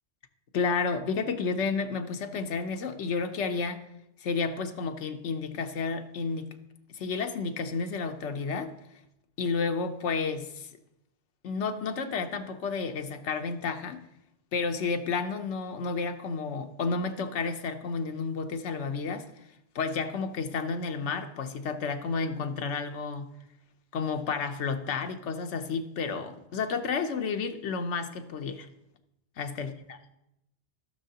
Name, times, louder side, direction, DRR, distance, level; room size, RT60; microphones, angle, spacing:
voice 1, 0.5-3.8 4.2-6.5 6.9-8.7 9.4-10.7 11.4-14.0 14.5-19.3 19.7-23.3 23.9-28.7 29.4-29.7, left 5 dB, 90° left, 7 dB, 1.1 m, -31 dB
16.0 x 6.3 x 2.8 m, 0.86 s
omnidirectional pair, 1.1 m